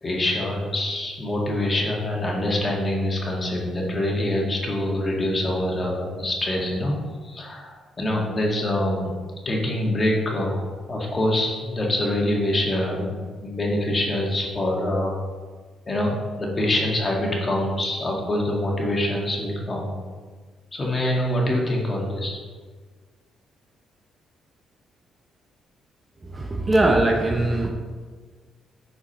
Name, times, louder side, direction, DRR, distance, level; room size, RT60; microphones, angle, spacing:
voice 1, 0.0-7.0 7.2-9.1 9.4-15.2 15.9-20.0 20.7-22.4, left 1 dB, 30° left, -2 dB, 1.8 m, -25 dB
voice 2, 26.2-27.7, right 2 dB, 20° right, 1 dB, 0.8 m, -21 dB
6.1 x 4.8 x 5.7 m, 1.5 s
cardioid pair, 90°, 0 cm